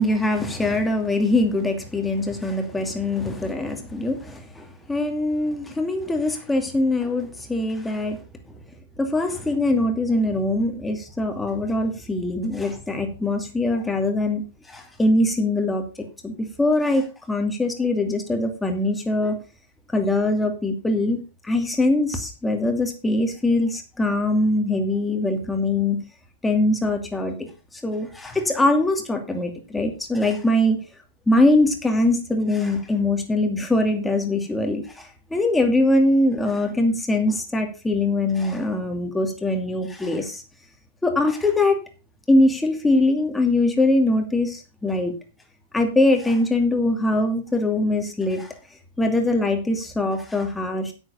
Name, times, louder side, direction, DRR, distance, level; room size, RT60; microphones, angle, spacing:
voice 1, 0.0-8.2 9.0-14.4 14.7-15.8 16.2-19.4 19.9-26.0 26.4-30.8 31.3-40.4 41.0-41.8 42.3-45.1 45.7-48.5 49.0-50.9, left 2 dB, 5° left, 3 dB, 2.6 m, -22 dB
9.7 x 8.2 x 5.6 m, 0.32 s
supercardioid pair, 145°, 0 cm